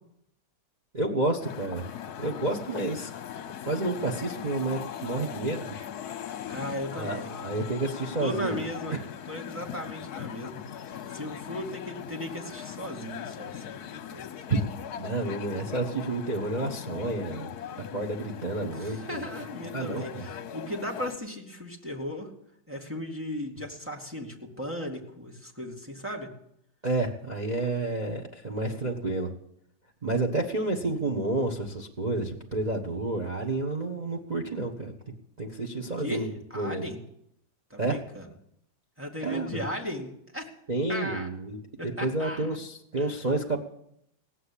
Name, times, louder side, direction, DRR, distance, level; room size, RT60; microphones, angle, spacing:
voice 1, 0.9-1.8 2.2-3.1 3.6-5.9 6.2-6.4 6.9-8.6 8.9-9.0 14.5-14.6 15.0-17.5 17.8-19.2 19.7-20.3 26.8-29.3 30.0-34.9 35.4-36.3 36.5-36.8 37.8-38.0 39.2-39.6 40.7-41.6 42.0-43.6, right 2 dB, 25° right, 2 dB, 1.1 m, -30 dB
sound 1, 1.4-21.2, left 9 dB, 60° left, 1.2 m, -40 dB
voice 2, 6.5-7.3 8.2-9.0 9.3-10.6 11.1-14.3 18.7-22.3 22.7-26.3 36.0-37.0 37.7-38.3 39.0-40.5 40.9-41.3 41.8-42.6 43.0-43.2, equal, 5° right, 1 dB, 2.2 m, -36 dB
17.0 x 7.8 x 10.0 m, 0.75 s
omnidirectional pair, 2.1 m